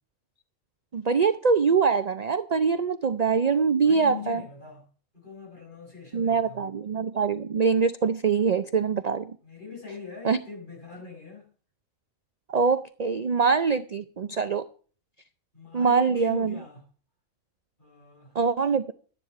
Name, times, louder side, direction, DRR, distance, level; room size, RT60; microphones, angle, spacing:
voice 1, 0.9-4.4 6.1-9.4 10.2-10.4 12.5-14.6 15.7-16.5 18.3-18.9, right 5 dB, 45° right, 0.5 m, -24 dB
voice 2, 3.8-4.8 5.1-6.7 9.4-11.5 15.5-16.8 17.8-18.4, left 5 dB, 35° left, 7.9 m, -41 dB
12.5 x 10.0 x 5.9 m
omnidirectional pair, 1.4 m